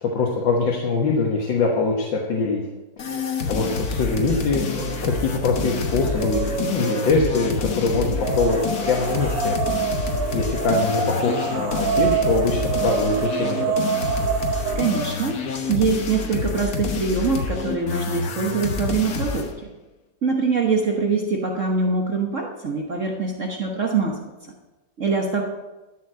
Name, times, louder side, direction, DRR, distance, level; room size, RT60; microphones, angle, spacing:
voice 1, 0.0-2.6 3.0-9.6 10.0-13.8, left 3 dB, 80° left, -1 dB, 2.0 m, -23 dB
sound 1, 3.0-19.5, left 5 dB, 55° left, 1.6 m, -28 dB
sound 2, 4.6-5.2 5.6-7.4 8.1-15.3, right 6 dB, 85° right, 2.1 m, -27 dB
voice 2, 14.7-15.4 15.7-19.7 20.2-24.2 25.0-25.4, right 4 dB, 45° right, 1 dB, 1.4 m, -23 dB
12.5 x 6.6 x 7.6 m, 1.1 s
omnidirectional pair, 2.0 m